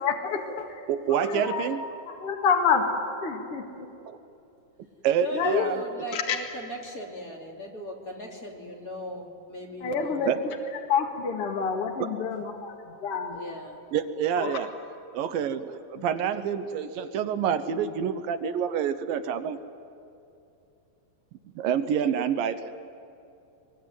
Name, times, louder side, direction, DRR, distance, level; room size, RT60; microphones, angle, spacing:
voice 1, 0.0-0.8 1.3-1.7 2.1-2.9 3.2-3.9 5.3-5.7 6.1-6.4 9.8-10.3 10.9-13.4 14.4-14.6 16.0-16.1, left 6 dB, 45° left, 1 dB, 2.6 m, -28 dB
voice 2, 0.9-1.8 4.1-4.2 5.0-5.8 10.3-10.4 13.9-14.7 15.1-19.6 21.6-22.7, right 8 dB, 80° right, 10 dB, 2.6 m, -27 dB
voice 3, 5.2-10.5 13.3-13.8, equal, 25° left, -2 dB, 3.0 m, -38 dB
24.0 x 22.5 x 9.5 m, 2.7 s
omnidirectional pair, 4.0 m